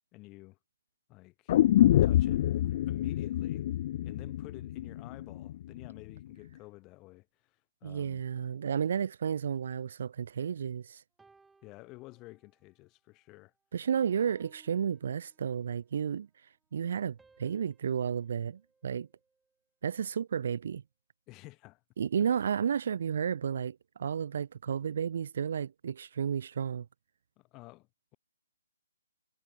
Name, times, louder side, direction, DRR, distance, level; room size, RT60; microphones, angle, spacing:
voice 1, 0.1-0.6 1.1-1.6 2.0-3.7 4.0-8.2 11.6-13.5 21.3-21.8 22.2-22.4 27.4-28.2, left 22 dB, 20° left, 6.4 m, -51 dB
sound 1, 1.5-5.5 5.8-5.9, left 12 dB, 40° left, 0.4 m, -26 dB
voice 2, 7.8-11.0 13.7-16.3 16.7-19.1 19.8-20.8 22.0-26.9, right 7 dB, 55° right, 1.0 m, -32 dB
sound 2, 11.2-12.7 13.2-13.5 14.2-15.8 17.2-19.6, right 4 dB, 5° right, 2.5 m, -65 dB
hypercardioid pair, 150°, 0 cm